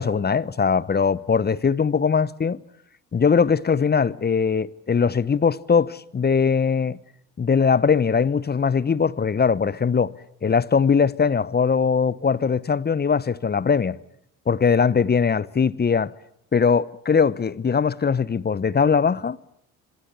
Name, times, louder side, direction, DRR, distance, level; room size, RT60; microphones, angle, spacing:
voice 1, 0.0-2.6 3.1-7.0 7.4-10.1 10.4-14.0 14.5-16.1 16.5-19.4, left 6 dB, 20° left, 0.9 m, -21 dB
26.0 x 22.0 x 8.2 m
hypercardioid pair, 55°, 45 cm